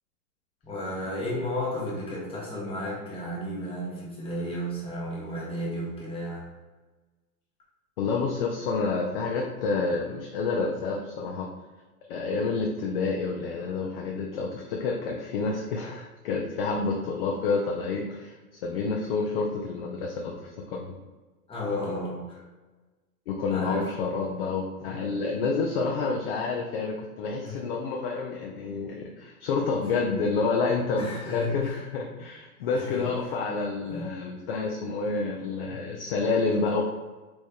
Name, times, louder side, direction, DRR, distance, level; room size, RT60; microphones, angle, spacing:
voice 1, 0.6-6.5 21.5-22.4 23.5-23.9 24.8-25.0 27.4-27.6 31.0-31.7 32.7-33.1 33.8-34.1 35.7-36.0, left 1 dB, 10° left, -4 dB, 0.9 m, -33 dB
voice 2, 8.0-11.5 12.1-21.0 23.3-36.8, left 4 dB, 40° left, 0 dB, 0.4 m, -29 dB
4.1 x 3.1 x 2.2 m, 1.2 s
hypercardioid pair, 105°, 47 cm